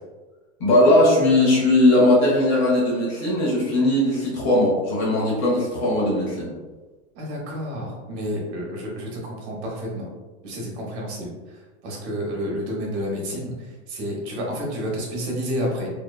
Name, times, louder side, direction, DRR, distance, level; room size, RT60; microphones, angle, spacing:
voice 1, 0.6-6.5, left 1 dB, 35° left, -5 dB, 0.9 m, -19 dB
voice 2, 7.2-10.1 10.4-15.9, equal, 65° right, -2 dB, 0.9 m, -30 dB
2.8 x 2.2 x 2.2 m, 1.3 s
supercardioid pair, 155°, 36 cm